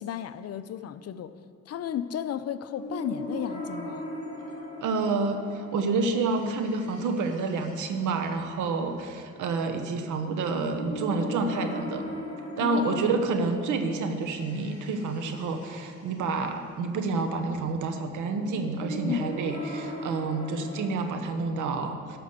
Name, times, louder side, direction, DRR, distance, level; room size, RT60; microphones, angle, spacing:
voice 1, 0.0-1.3 1.7-4.1 12.6-13.1 19.0-19.3, left 9 dB, 55° left, 12 dB, 0.6 m, -33 dB
sound 1, 2.7-20.9, equal, 25° left, 2.8 m, -40 dB
voice 2, 4.8-12.0 12.6-22.2, right 3 dB, 80° right, 6 dB, 1.1 m, -29 dB
12.5 x 6.1 x 6.8 m, 2.3 s
cardioid pair, 90°, 30 cm